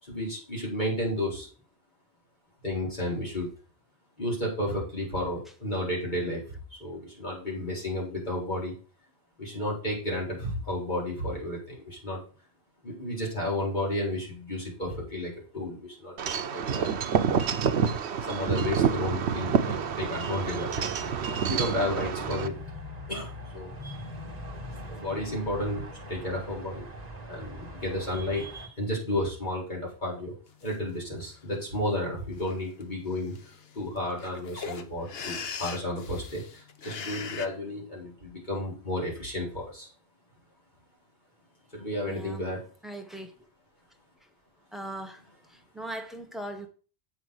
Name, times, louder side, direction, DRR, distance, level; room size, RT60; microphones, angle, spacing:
voice 1, 0.0-1.5 2.6-3.5 4.2-6.4 6.7-8.7 9.4-12.2 12.8-16.9 18.3-21.1 21.5-22.5 23.1-24.0 24.9-26.9 27.2-30.3 30.6-33.3 33.7-39.9 41.7-42.7, left 1 dB, 45° left, 4.6 m, -32 dB
Wind chime / Wind, 16.2-22.5, right 7 dB, 90° right, 1.0 m, -28 dB
sound 1, 18.5-28.7, left 1 dB, 40° right, 1.5 m, -42 dB
sound 2, 30.6-30.7 31.2-31.6 32.3-32.5 32.8-32.9 33.1-37.5, left 6 dB, 70° left, 1.1 m, -40 dB
voice 2, 42.1-42.4 42.8-43.3 44.7-45.2 45.5-46.7, right 1 dB, ahead, 1.2 m, -39 dB
7.8 x 5.8 x 6.4 m
omnidirectional pair, 1.1 m